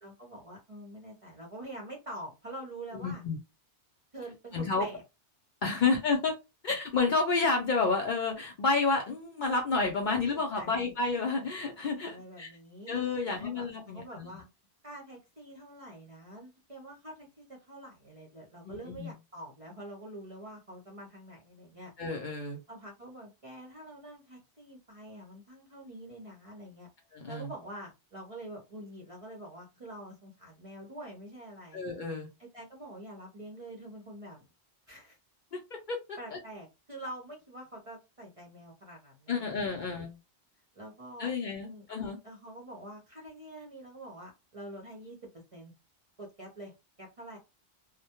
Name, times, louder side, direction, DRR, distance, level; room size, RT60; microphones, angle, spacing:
voice 1, 0.0-3.2 4.1-5.0 5.7-5.9 10.0-11.0 12.0-13.0 13.2-14.4 14.8-21.9 22.7-26.9 27.3-31.8 32.4-34.5 34.9-35.2 36.2-39.9 40.8-41.3 41.6-41.9 42.2-45.7 46.2-46.7 47.0-47.4, right 1 dB, 40° right, 0.5 m, -46 dB
voice 2, 3.0-3.4 4.5-4.9 5.6-6.4 6.6-12.5 12.9-14.4 18.7-19.1 22.0-22.6 27.1-27.5 31.7-32.3 35.5-35.6 35.9-36.2 39.3-40.1 41.2-42.2, left 4 dB, 60° left, 0.5 m, -30 dB
2.1 x 2.0 x 2.8 m
omnidirectional pair, 1.2 m